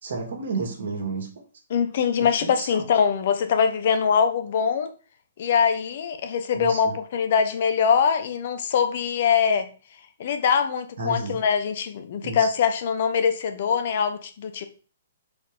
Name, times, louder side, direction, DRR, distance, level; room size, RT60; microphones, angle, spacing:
voice 1, 0.0-1.3 2.2-2.9 6.5-7.0 11.0-11.4 12.2-12.5, right 3 dB, 65° right, 2.2 m, -32 dB
voice 2, 1.7-4.9 5.4-9.7 10.2-14.6, left 7 dB, 55° left, 1.1 m, -23 dB
4.7 x 4.3 x 5.3 m
figure-of-eight pair, 125°, 0 cm